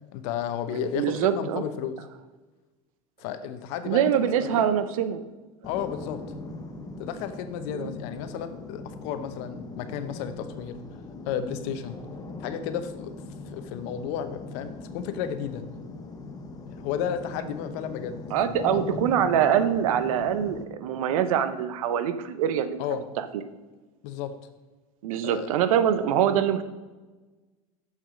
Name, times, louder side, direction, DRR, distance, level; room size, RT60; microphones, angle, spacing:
voice 1, 0.1-2.0 3.2-4.7 5.6-6.2 7.0-10.8 11.2-12.0 12.4-13.1 13.5-15.6 16.7-18.2 18.5-19.0 22.8-23.0 24.0-24.3 25.2-25.5, left 8 dB, 65° left, 10 dB, 0.9 m, -33 dB
voice 2, 0.9-1.6 3.9-5.2 7.7-7.9 18.3-23.3 25.0-26.6, right 9 dB, 80° right, 11 dB, 0.7 m, -24 dB
sound 1, 5.6-20.6, left 3 dB, 20° left, 1.1 m, -40 dB
6.7 x 6.2 x 5.1 m, 1.2 s
hypercardioid pair, 100°, 18 cm